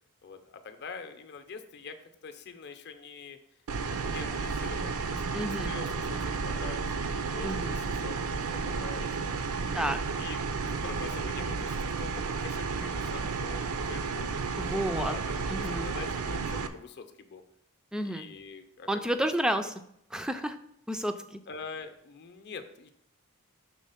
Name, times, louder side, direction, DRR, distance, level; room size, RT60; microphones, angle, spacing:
voice 1, 0.2-2.0 2.2-3.4 3.9-6.9 7.3-9.2 9.6-9.9 10.2-14.3 14.7-17.4 18.0-19.0 21.5-22.9, left 5 dB, 50° left, 7 dB, 0.6 m, -44 dB
sound 1, 3.7-16.7, right 4 dB, 70° right, 0.6 m, -32 dB
voice 2, 5.3-5.7 7.4-7.8 9.7-10.0 14.6-15.1 15.5-15.9 17.9-18.3 18.9-19.7 20.1-20.6 20.9-21.4, right 1 dB, 5° right, 8 dB, 0.3 m, -31 dB
6.2 x 3.7 x 5.6 m, 0.74 s
head